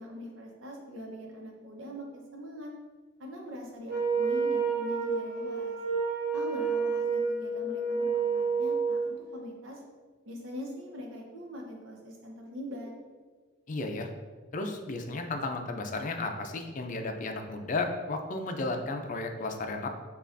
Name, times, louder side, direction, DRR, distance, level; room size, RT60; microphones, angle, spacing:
voice 1, 0.0-2.7 3.2-5.8 6.3-9.8 10.3-12.9, equal, 90° right, -1 dB, 0.9 m, -42 dB
Wind instrument woodwind instrument, 3.9-9.1, right 5 dB, 55° right, 0.9 m, -29 dB
voice 2, 13.7-14.1 14.5-19.9, left 3 dB, 40° left, 5 dB, 0.4 m, -33 dB
7.1 x 2.4 x 2.6 m, 1.4 s
head